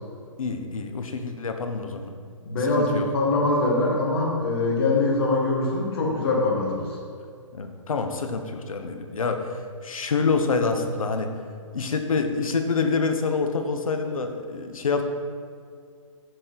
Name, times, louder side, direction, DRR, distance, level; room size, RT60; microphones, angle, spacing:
voice 1, 0.4-2.1 2.6-3.1 6.1-6.3 7.5-11.3 11.7-15.0, left 4 dB, 85° left, 6 dB, 0.7 m, -27 dB
voice 2, 2.4-7.0, left 2 dB, 50° left, -2 dB, 1.5 m, -23 dB
6.6 x 4.2 x 3.9 m, 2.2 s
hypercardioid pair, 150°, 17 cm